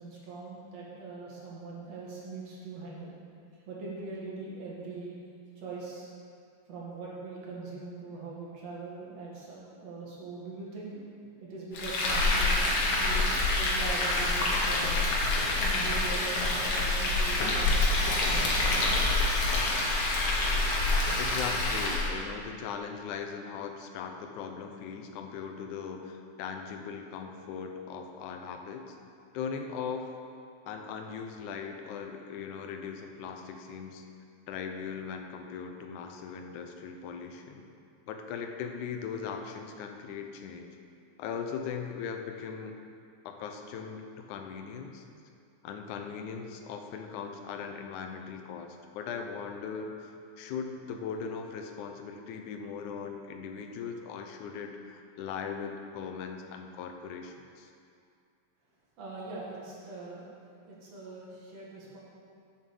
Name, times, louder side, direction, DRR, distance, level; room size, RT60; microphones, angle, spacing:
voice 1, 0.0-3.1 3.7-5.1 5.6-6.1 6.7-11.0 11.4-15.1 15.6-19.5 59.0-60.3 60.7-62.0, right 3 dB, 60° right, -5 dB, 2.8 m, -42 dB
Frying (food), 11.7-22.1, left 2 dB, 70° left, 2.4 m, -27 dB
voice 2, 21.2-29.0 29.3-30.1 30.7-34.0 34.5-37.6 38.1-40.8 41.2-42.8 43.3-45.0 45.6-57.7, left 6 dB, 90° left, 5 dB, 2.2 m, -39 dB
7.2 x 7.1 x 6.8 m, 2.4 s
omnidirectional pair, 3.4 m